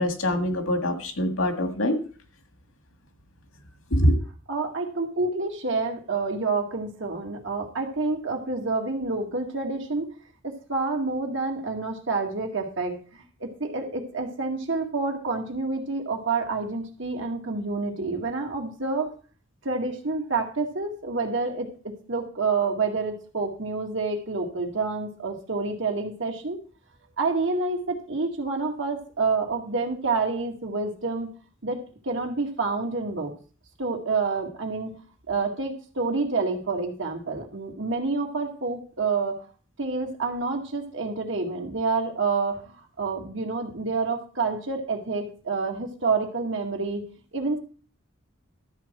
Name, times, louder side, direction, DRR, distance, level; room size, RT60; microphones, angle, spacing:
voice 1, 0.0-2.0 3.9-4.2, equal, 80° left, 6 dB, 2.0 m, -23 dB
voice 2, 4.5-10.1 10.4-19.1 19.6-26.6 27.2-31.3 31.6-33.3 33.8-35.0 35.3-39.5 39.8-47.0 47.3-47.6, right 3 dB, 65° right, 2 dB, 2.3 m, -28 dB
13.0 x 7.9 x 4.6 m, 0.39 s
head